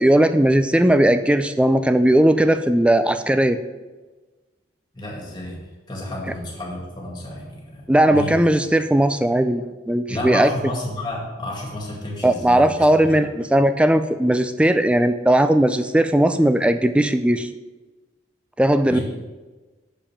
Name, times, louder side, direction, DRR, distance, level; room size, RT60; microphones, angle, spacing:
voice 1, 0.0-3.6 7.9-10.5 12.2-17.5 18.6-19.0, right 1 dB, 5° right, 10 dB, 0.3 m, -18 dB
voice 2, 4.9-5.6 5.9-8.4 10.1-13.2 18.8-19.0, left 1 dB, 20° left, -2 dB, 2.0 m, -31 dB
6.7 x 5.2 x 7.2 m, 1.2 s
head